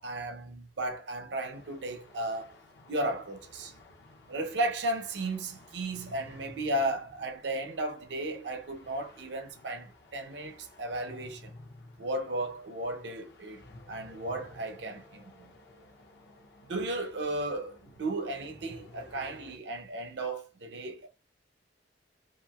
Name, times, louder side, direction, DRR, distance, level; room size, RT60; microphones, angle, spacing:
voice 1, 0.0-2.5 2.9-3.7 4.3-11.5 12.0-15.5 16.6-21.1, right 1 dB, 75° right, 0.6 m, -35 dB
sound 1, 1.5-19.6, left 2 dB, 65° left, 0.6 m, -54 dB
2.9 x 2.8 x 2.3 m
head